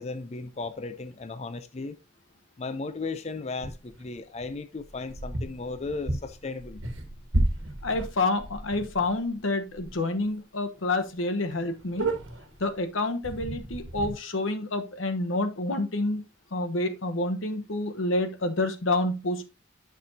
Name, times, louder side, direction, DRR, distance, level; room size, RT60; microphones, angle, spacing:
voice 1, 0.0-2.0 2.6-6.8, left 3 dB, 35° left, 0.4 m, -35 dB
sound 1, 3.6-4.1 4.8-9.3 9.7-9.9 10.2-10.3 10.8-10.9 11.1-11.2 11.5-12.6 13.2-14.1, right 1 dB, 80° right, 1.3 m, -32 dB
voice 2, 7.8-12.1 12.6-16.2 16.5-19.5, left 2 dB, 90° left, 1.0 m, -28 dB
9.8 x 6.0 x 2.7 m
head